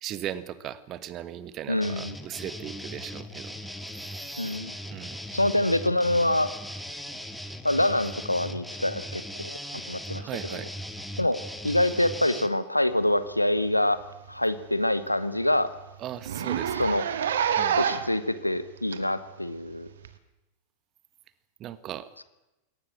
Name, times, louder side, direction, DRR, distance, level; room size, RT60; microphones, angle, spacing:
voice 1, 0.0-3.5 4.9-5.2 10.2-10.7 16.0-16.9 17.6-17.8 21.6-22.1, right 11 dB, 35° right, 15 dB, 1.4 m, -37 dB
voice 2, 1.7-2.1 4.4-4.7 5.3-6.5 7.6-9.6 9.9-10.6 11.2-11.4 11.6-14.0 14.3-15.7 16.8-17.0 17.8-19.9, left 1 dB, 85° left, 14 dB, 1.3 m, -25 dB
sound 1, 1.8-12.5, equal, ahead, 1.7 m, -39 dB
Zipper (clothing), 13.6-13.8 14.1-14.2 14.6-14.7 15.1-15.2 15.4-15.6 16.2-18.2 18.9-19.0 20.0-20.1, right 8 dB, 65° right, 1.7 m, -27 dB
22.0 x 18.0 x 7.4 m, 0.99 s
figure-of-eight pair, 90°, 0 cm